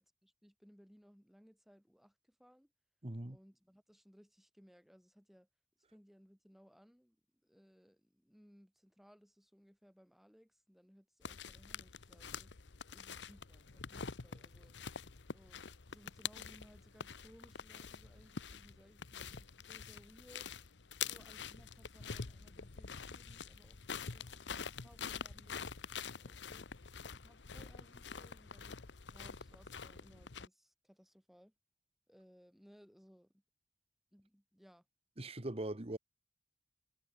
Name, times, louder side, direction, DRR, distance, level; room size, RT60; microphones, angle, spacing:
voice 1, 0.2-2.7 3.3-5.5 5.9-7.2 7.4-12.5 12.9-14.7 15.3-20.5 21.0-25.7 26.1-26.7 27.1-28.8 29.1-31.5 32.1-33.4 34.1-34.9, equal, ahead, 5.4 m, -64 dB
voice 2, 3.0-3.4 35.2-36.0, right 1 dB, 35° right, 1.3 m, -41 dB
sound 1, 11.2-30.5, left 6 dB, 85° left, 1.0 m, -46 dB
head